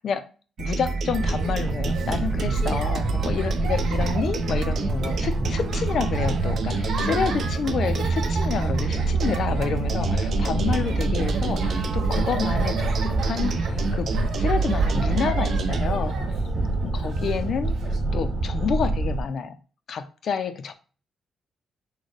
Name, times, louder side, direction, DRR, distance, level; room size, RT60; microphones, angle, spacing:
voice 1, 0.6-14.1 14.4-16.2 16.8-17.7 18.1-19.6 19.9-20.7, left 6 dB, 45° left, 10 dB, 0.4 m, -29 dB
sound 1, 0.6-15.9, right 5 dB, 45° right, 0.5 m, -29 dB
sound 2, 1.1-19.2, right 2 dB, 15° right, 0.9 m, -27 dB
Laughter, 1.2-18.0, right 5 dB, 65° right, 0.9 m, -38 dB
6.3 x 2.2 x 3.2 m, 0.37 s
cardioid pair, 175°, 0 cm